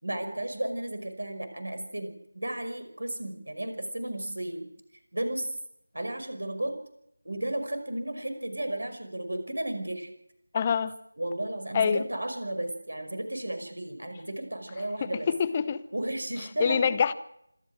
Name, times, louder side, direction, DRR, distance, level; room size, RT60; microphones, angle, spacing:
voice 1, 0.0-4.7 5.1-5.5 5.9-6.7 7.2-10.1 11.2-15.3 15.9-16.9, right 1 dB, 65° right, 9 dB, 5.5 m, -33 dB
voice 2, 10.5-10.9 11.7-12.0 15.0-15.8 16.6-17.1, left 6 dB, 20° left, 14 dB, 0.8 m, -25 dB
26.5 x 13.5 x 7.8 m, 0.77 s
figure-of-eight pair, 165°, 0 cm